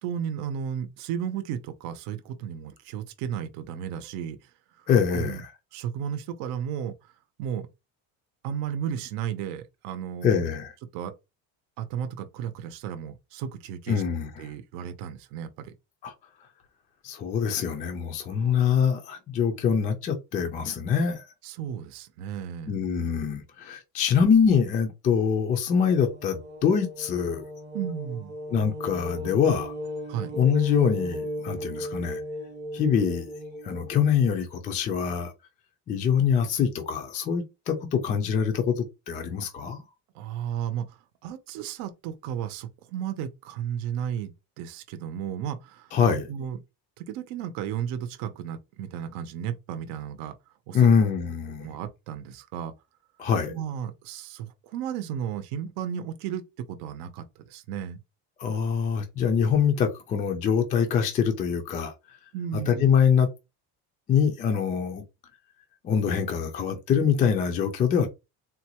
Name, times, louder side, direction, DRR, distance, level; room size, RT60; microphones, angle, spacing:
voice 1, 0.0-4.9 5.1-5.4 5.7-7.1 7.4-7.7 8.4-10.5 10.9-11.1 11.8-14.0 14.4-15.7 18.3-18.6 21.4-22.8 27.7-28.3 30.1-30.3 40.1-46.6 47.0-50.3 50.7-50.9 51.6-52.7 53.5-58.0 62.3-62.8, right 9 dB, 75° right, 0.7 m, -34 dB
voice 2, 4.9-5.5 10.2-10.7 13.9-14.3 16.0-16.1 17.0-21.2 22.7-27.5 28.5-29.7 30.4-32.2 32.7-33.3 33.6-35.3 35.9-39.8 45.9-46.3 50.7-51.7 53.2-53.5 58.4-62.2 62.7-63.3 64.1-65.0 65.8-68.1, left 7 dB, 20° left, 0.3 m, -24 dB
sound 1, 26.0-33.9, equal, 30° right, 0.7 m, -36 dB
3.8 x 2.2 x 2.8 m
cardioid pair, 180°, 37 cm